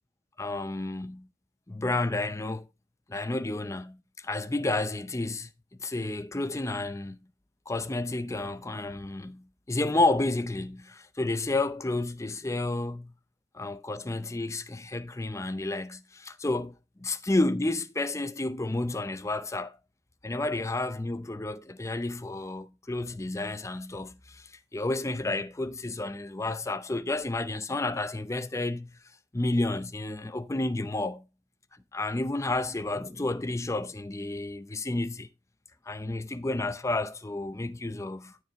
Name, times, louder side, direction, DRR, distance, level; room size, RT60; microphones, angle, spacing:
voice 1, 0.4-1.3 1.7-2.7 3.1-5.5 5.8-7.2 7.7-13.1 13.6-19.8 20.2-29.0 29.3-31.3 31.9-35.3 35.9-38.4, left 2 dB, 15° left, 0.6 m, -31 dB
12.5 x 5.3 x 3.7 m
head